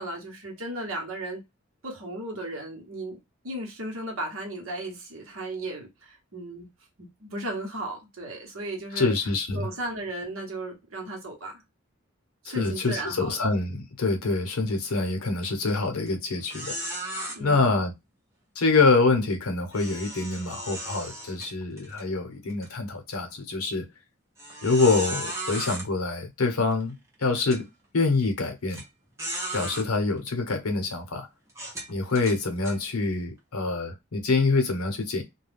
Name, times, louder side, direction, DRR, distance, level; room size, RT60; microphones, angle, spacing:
voice 1, 0.0-1.4 1.8-3.2 3.4-6.7 7.0-9.1 9.5-11.6 12.4-13.4 17.3-17.8, right 1 dB, 70° right, 1.0 m, -35 dB
voice 2, 8.9-9.7 12.4-16.8 17.4-17.9 18.6-23.9 24.6-27.0 27.2-27.7 27.9-28.8 29.5-31.3 31.9-35.2, left 3 dB, 85° left, 0.8 m, -25 dB
sound 1, 15.4-15.7 16.1-16.2 16.5-17.4 19.7-22.0 22.5-22.7 23.3-23.4 24.4-25.9 26.7-26.8 27.3-27.6 28.7-28.8 29.2-29.9 30.5-30.7 31.5-32.8, right 1 dB, 15° right, 0.8 m, -35 dB
2.3 x 2.2 x 3.3 m
head